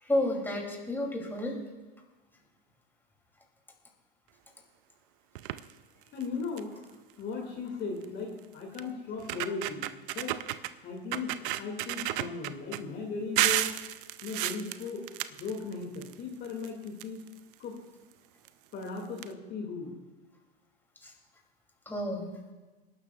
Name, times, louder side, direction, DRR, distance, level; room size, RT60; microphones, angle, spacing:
voice 1, 0.0-1.6 21.0-21.1 21.8-22.2, left 1 dB, 5° left, 1 dB, 3.0 m, -31 dB
sound 1, 5.3-5.7 6.2-6.3 6.6-6.8 8.0-8.1 8.8-8.9 9.2-10.7 11.1-12.8 13.4-16.1 16.4-17.5 18.4-18.5 18.8-18.9 19.2-19.3, right 15 dB, 60° right, 0.6 m, -32 dB
voice 2, 6.1-10.3 10.8-13.7 14.2-15.0 15.4-17.2 17.6-17.8 18.7-20.0, left 4 dB, 35° left, 1 dB, 2.5 m, -37 dB
27.5 x 12.0 x 2.4 m, 1.2 s
hypercardioid pair, 100°, 30 cm